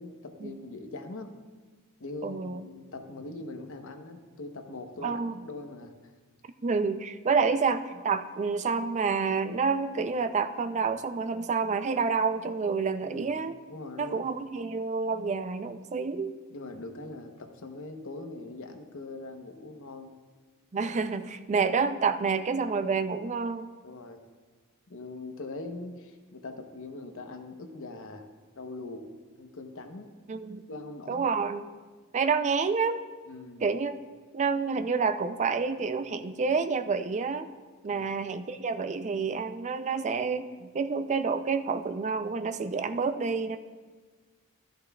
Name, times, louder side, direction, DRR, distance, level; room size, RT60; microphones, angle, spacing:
voice 1, 0.0-1.3 2.0-5.9 13.0-13.3 13.7-14.3 16.5-20.1 23.8-24.2 24.9-28.3 28.6-29.1 29.4-30.1 30.7-31.3 33.3-33.6 37.9-38.1, left 2 dB, 65° left, 5 dB, 0.9 m, -42 dB
voice 2, 2.2-2.6 5.0-5.3 6.6-13.6 14.0-16.4 20.7-23.7 30.3-30.6 31.1-31.7 32.1-33.0 33.6-34.0 34.3-37.5 37.8-43.6, right 5 dB, 35° right, 9 dB, 0.4 m, -28 dB
13.0 x 10.5 x 2.3 m, 1.4 s
head